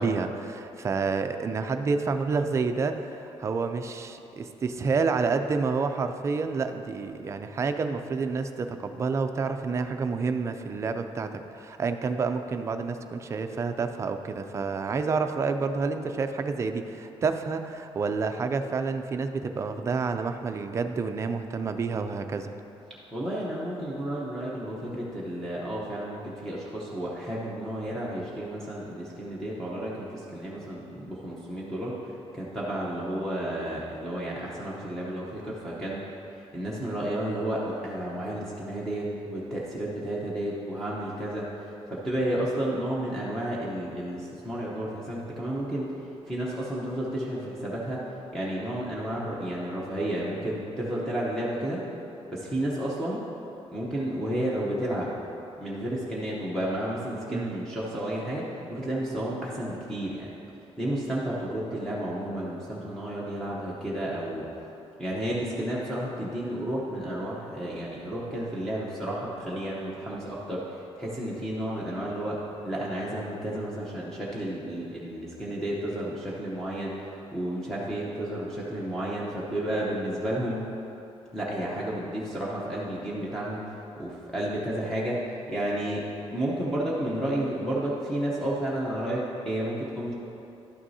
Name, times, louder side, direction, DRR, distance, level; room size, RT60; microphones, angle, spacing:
voice 1, 0.0-22.5 57.3-57.5, right 4 dB, 25° right, 7 dB, 0.4 m, -29 dB
voice 2, 23.1-36.0 36.5-45.9 46.3-48.0 48.3-51.8 52.3-53.2 53.7-55.1 55.6-60.3 60.8-64.5 65.0-80.6 81.3-86.0 86.3-90.1, right 1 dB, 5° left, -7 dB, 0.8 m, -32 dB
11.5 x 6.1 x 2.7 m, 2.8 s
cardioid pair, 155°, 11 cm